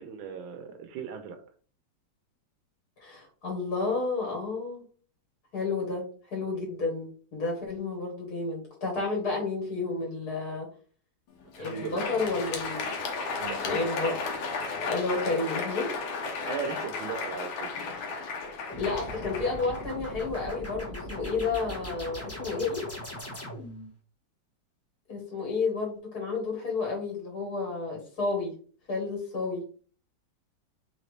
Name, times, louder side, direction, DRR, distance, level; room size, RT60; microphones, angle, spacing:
voice 1, 0.0-1.4 11.6-12.1 13.4-13.9 16.5-17.7, right 6 dB, 80° right, 7 dB, 1.5 m, -37 dB
voice 2, 3.0-4.8 5.5-10.7 11.6-12.9 13.6-14.1 14.9-15.9 18.6-22.8 25.1-28.5 28.9-29.6, left 3 dB, 50° left, 0 dB, 1.8 m, -31 dB
Crowd, 11.4-20.4, left 4 dB, 80° left, 1.7 m, -34 dB
sound 1, 18.7-23.9, equal, 10° left, 0.7 m, -39 dB
4.0 x 3.6 x 3.1 m, 0.41 s
omnidirectional pair, 2.2 m